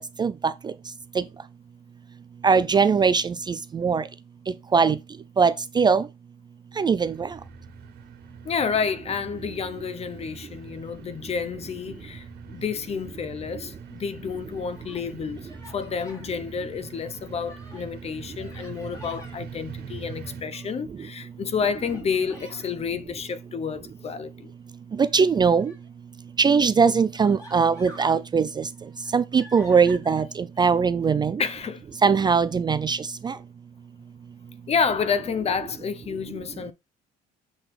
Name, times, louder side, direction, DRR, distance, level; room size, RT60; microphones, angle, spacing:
voice 1, 0.2-0.7 1.2-1.3 2.4-4.0 4.7-5.0 5.4-6.1 6.8-7.3 25.0-25.7 26.4-28.7 29.1-31.4 32.0-33.4, right 5 dB, 25° right, 0.4 m, -21 dB
sound 1, 7.0-20.4, right 5 dB, 70° right, 1.8 m, -45 dB
voice 2, 8.4-15.4 15.7-24.5 31.4-31.8 34.7-36.7, left 6 dB, 40° left, 0.8 m, -29 dB
Human voice, 14.4-15.1 15.5-16.3 16.8-17.9 18.4-19.4 20.0-20.8 21.7-22.7 25.0-25.9 26.6-26.7 27.1-28.2 28.7-30.2, equal, 20° left, 3.0 m, -49 dB
7.3 x 4.0 x 3.3 m
cardioid pair, 110°, 17 cm